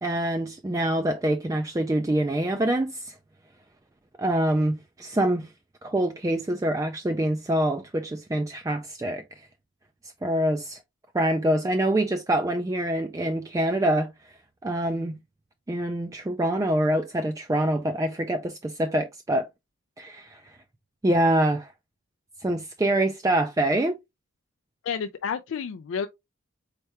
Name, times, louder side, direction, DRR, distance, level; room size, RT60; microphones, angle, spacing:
voice 1, 0.0-3.1 4.2-5.5 5.8-9.2 10.2-10.8 11.1-14.1 14.6-15.2 15.7-19.5 20.0-20.4 21.0-21.7 22.4-24.0, right 1 dB, 15° right, 0.3 m, -25 dB
voice 2, 24.8-26.1, left 6 dB, 70° left, 0.4 m, -30 dB
4.5 x 3.3 x 2.8 m
head